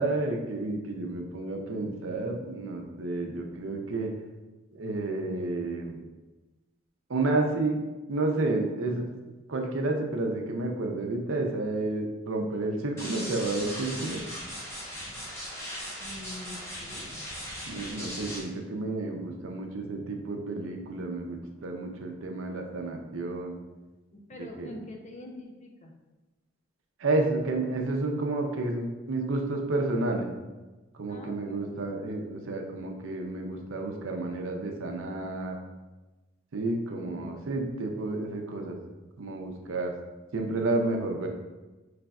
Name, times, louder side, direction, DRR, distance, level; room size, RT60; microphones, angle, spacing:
voice 1, 0.0-4.1 4.7-6.0 7.1-7.8 8.1-9.1 9.5-14.2 17.7-23.6 24.4-24.7 27.0-30.3 30.9-35.6 36.5-38.8 39.2-39.9 40.3-41.3, right 2 dB, 75° right, 3 dB, 0.5 m, -30 dB
sound 1, 13.0-18.4, equal, 15° left, 0.9 m, -38 dB
voice 2, 16.0-17.0 24.1-25.9 31.1-31.7 37.1-37.4, left 1 dB, 35° left, 1 dB, 0.5 m, -44 dB
5.0 x 3.2 x 2.3 m, 1.2 s
head